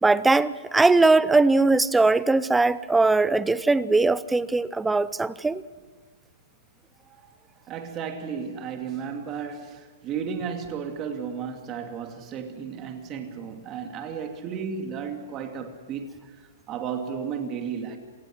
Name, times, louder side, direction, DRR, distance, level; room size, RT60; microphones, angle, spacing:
voice 1, 0.0-5.6, right 3 dB, 5° right, 0.5 m, -20 dB
voice 2, 7.6-18.0, right 6 dB, 25° right, 2.5 m, -34 dB
27.5 x 19.0 x 6.2 m
hypercardioid pair, 160°, 0 cm